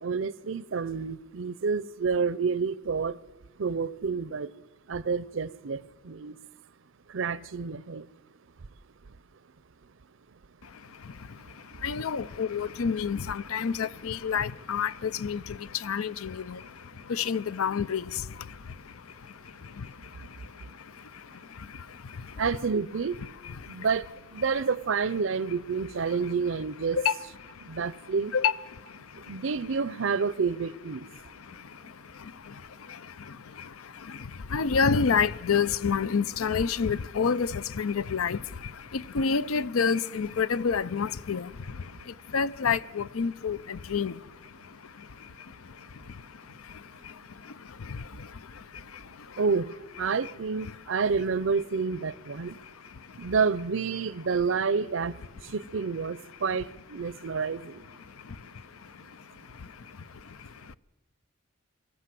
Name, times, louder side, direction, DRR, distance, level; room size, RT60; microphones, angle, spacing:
voice 1, 0.0-3.2 3.6-4.5 4.9-6.3 7.1-8.0 22.4-23.2 23.7-24.1 24.3-27.0 27.7-28.3 29.3-31.0 49.4-49.7 50.0-52.6 53.2-55.2 55.5-57.7, right 5 dB, 65° right, 0.5 m, -29 dB
voice 2, 10.6-22.4 23.4-23.9 27.0-28.0 28.3-29.4 31.1-49.4 50.1-50.3 50.6-50.8 52.4-53.3 57.1-57.4 57.9-60.8, left 6 dB, 85° left, 0.6 m, -31 dB
24.0 x 15.0 x 7.6 m
head